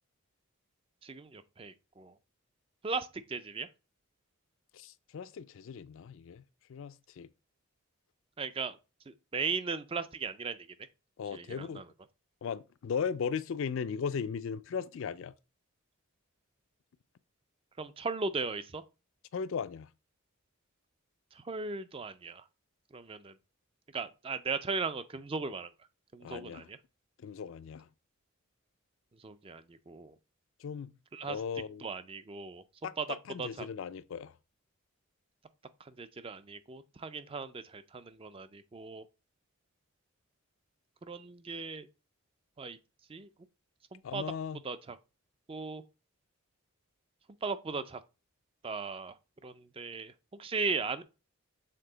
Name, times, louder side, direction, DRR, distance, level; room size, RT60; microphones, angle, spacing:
voice 1, 1.0-2.1 2.8-3.7 8.4-8.8 9.1-10.6 11.3-11.9 17.8-18.8 21.3-22.4 22.9-23.3 23.9-25.7 26.1-26.8 29.2-30.1 31.1-31.4 31.8-32.6 33.0-33.1 33.4-33.7 35.9-39.0 41.0-41.9 42.6-42.8 43.1-43.3 43.9-44.2 44.6-45.0 45.5-45.8 47.4-48.0 48.6-49.1 49.4-50.1 50.4-51.0, right 4 dB, 25° right, 0.4 m, -37 dB
voice 2, 4.7-6.4 6.7-7.3 11.2-11.8 12.4-15.3 19.3-19.9 26.2-26.7 27.2-27.9 30.6-30.9 31.3-31.9 32.8-34.3 44.0-44.6, left 6 dB, 65° left, 0.3 m, -37 dB
6.7 x 3.6 x 3.9 m
head